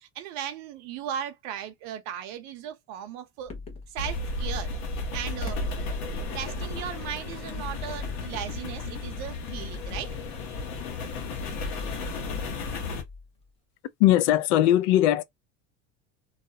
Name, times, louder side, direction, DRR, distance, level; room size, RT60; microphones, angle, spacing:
voice 1, 0.0-3.5 3.9-4.7 5.1-5.6 6.3-10.2, right 10 dB, 55° right, 0.6 m, -37 dB
sound 1, 3.5-3.9 5.5-6.4 7.5-8.7 9.5-10.8 11.5-13.4, left 4 dB, 20° left, 0.5 m, -40 dB
sound 2, 4.0-13.0, left 3 dB, 55° left, 0.8 m, -34 dB
voice 2, 14.0-15.2, left 13 dB, 80° left, 0.5 m, -20 dB
2.4 x 2.0 x 2.7 m
cardioid pair, 160°, 33 cm